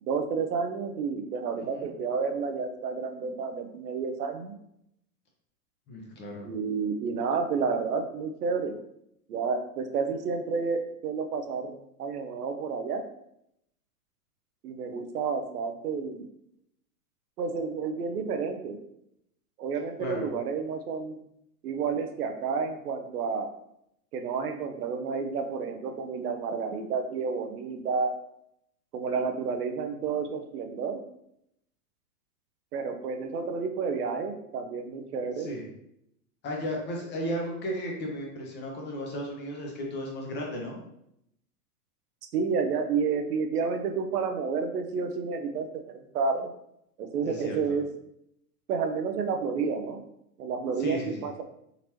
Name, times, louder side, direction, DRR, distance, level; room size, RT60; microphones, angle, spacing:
voice 1, 0.0-4.5 6.4-8.8 9.3-13.0 14.6-16.3 17.4-18.8 19.6-21.2 21.6-23.5 24.1-28.1 28.9-31.0 32.7-35.5 42.3-46.5 47.0-47.9 48.7-50.0 50.4-51.4, right 5 dB, 80° right, 6 dB, 0.7 m, -30 dB
voice 2, 5.9-6.5 20.0-20.3 35.4-35.7 36.4-40.8 47.3-47.6 50.8-51.3, equal, 25° left, -1 dB, 0.8 m, -34 dB
3.9 x 3.0 x 2.9 m, 0.77 s
hypercardioid pair, 125°, 46 cm